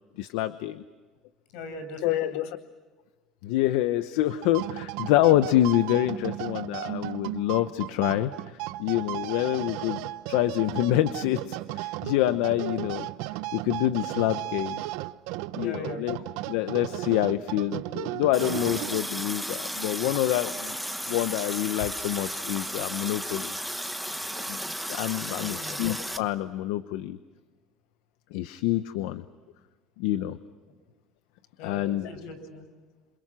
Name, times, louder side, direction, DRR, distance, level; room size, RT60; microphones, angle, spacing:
voice 1, 0.2-0.8 2.0-2.4 3.4-13.1 13.5-14.8 15.5-16.2 16.5-20.7 21.1-23.5 24.5-24.6 24.9-27.2 28.3-29.2 30.0-30.4 31.6-32.1, left 14 dB, 90° left, 12 dB, 0.9 m, -26 dB
voice 2, 1.5-2.4 15.6-16.0 25.2-25.8 31.6-32.7, left 2 dB, 70° left, 9 dB, 7.0 m, -40 dB
sound 1, 4.3-19.3, right 17 dB, 80° right, 0.9 m, -35 dB
Water tap faucet, 18.3-26.2, equal, ahead, 1.3 m, -34 dB
27.5 x 27.5 x 6.3 m, 1.4 s
cardioid pair, 155°, 0 cm